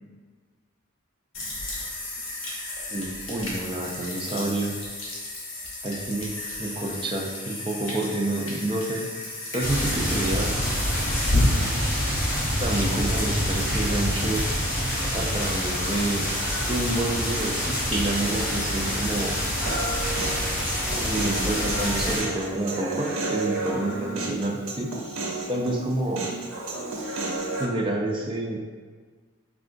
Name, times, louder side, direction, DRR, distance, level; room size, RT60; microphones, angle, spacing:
sound 1, 1.3-17.4, left 1 dB, 75° left, 0.8 m, -33 dB
voice 1, 2.9-4.7 5.8-9.0 9.5-10.6 12.6-14.4 15.1-16.2 16.7-19.4 21.0-24.9 25.5-26.3 27.6-28.7, right 2 dB, 25° right, -1 dB, 0.3 m, -28 dB
sound 2, 9.6-22.2, equal, 35° left, 1.0 m, -26 dB
Human voice, 19.6-27.7, right 2 dB, 80° right, 0.5 m, -32 dB
3.6 x 2.4 x 2.5 m, 1.5 s
head